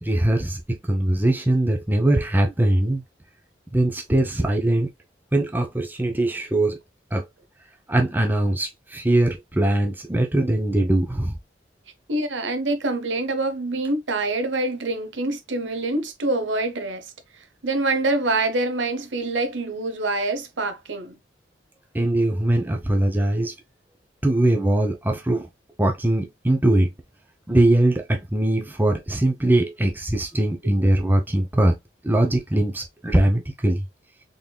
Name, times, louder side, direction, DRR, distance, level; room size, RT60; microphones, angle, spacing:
voice 1, 0.0-3.0 3.7-4.9 5.3-6.8 7.1-7.2 7.9-11.4 21.9-23.5 24.2-25.5 25.8-26.9 27.5-31.8 32.0-33.9, right 1 dB, 10° right, 0.6 m, -21 dB
voice 2, 12.1-17.1 17.6-21.2, right 2 dB, 85° right, 0.9 m, -25 dB
3.8 x 3.6 x 2.2 m
head